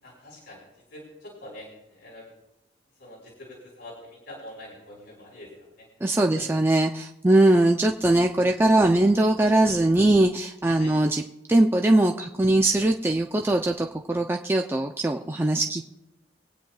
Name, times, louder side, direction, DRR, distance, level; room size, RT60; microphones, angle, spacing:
voice 1, 0.0-2.3 3.0-5.9 6.3-6.5 7.3-7.4 10.8-10.9, left 1 dB, 85° left, -5 dB, 4.5 m, -45 dB
voice 2, 6.0-11.2 11.5-15.8, right 1 dB, 15° right, 2 dB, 0.4 m, -21 dB
25.0 x 9.0 x 2.3 m, 0.92 s
head